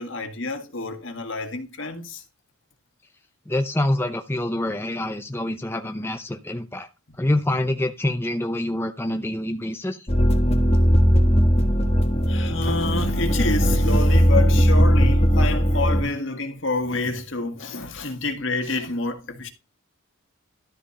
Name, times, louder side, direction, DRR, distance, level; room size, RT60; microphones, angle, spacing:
voice 1, 0.0-2.2 12.3-19.5, left 3 dB, 60° left, 1.8 m, -28 dB
voice 2, 3.5-6.9 7.2-10.1, left 1 dB, 10° left, 0.7 m, -26 dB
sound 1, 10.1-16.0, equal, 30° left, 1.5 m, -18 dB
13.0 x 4.3 x 5.0 m
head